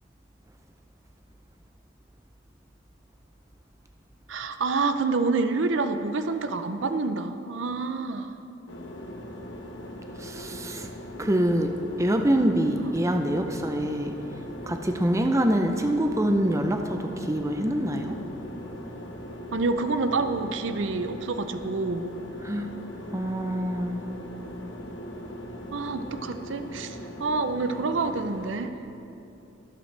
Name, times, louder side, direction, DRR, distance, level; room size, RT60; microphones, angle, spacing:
voice 1, 4.3-8.3 13.5-13.6 19.5-22.2 25.7-28.7, right 3 dB, 70° right, 9 dB, 0.6 m, -28 dB
sound 1, 8.7-28.6, equal, 65° left, 1.1 m, -40 dB
voice 2, 10.2-10.9 11.2-14.2 14.6-18.2 22.4-22.7 23.1-24.0, right 1 dB, 15° right, 5 dB, 0.5 m, -25 dB
23.5 x 8.0 x 3.3 m, 2.7 s
head